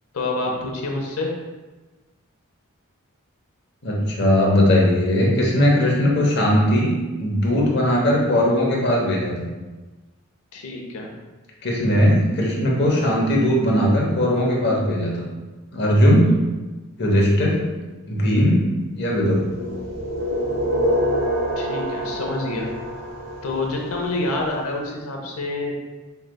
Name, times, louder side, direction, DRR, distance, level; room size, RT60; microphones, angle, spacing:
voice 1, 0.1-1.3 10.5-11.1 21.6-22.7 23.4-25.8, left 2 dB, 90° left, 0 dB, 0.8 m, -27 dB
voice 2, 3.8-6.9 7.2-9.5 11.6-15.3 15.7-16.3 17.0-17.7 18.1-18.6 19.0-19.5, equal, 50° left, -3 dB, 0.9 m, -19 dB
sound 1, 19.3-24.2, equal, 85° right, 0.7 m, -26 dB
4.9 x 3.2 x 2.2 m, 1.2 s
head